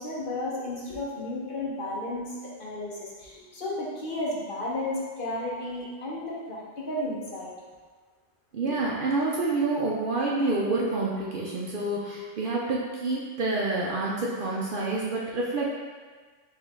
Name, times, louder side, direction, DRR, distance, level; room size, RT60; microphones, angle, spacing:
voice 1, 0.0-7.5, left 1 dB, 50° left, -5 dB, 0.9 m, -33 dB
voice 2, 8.5-15.8, right 2 dB, 60° right, -4 dB, 0.6 m, -28 dB
4.5 x 2.9 x 3.3 m, 1.5 s
omnidirectional pair, 1.2 m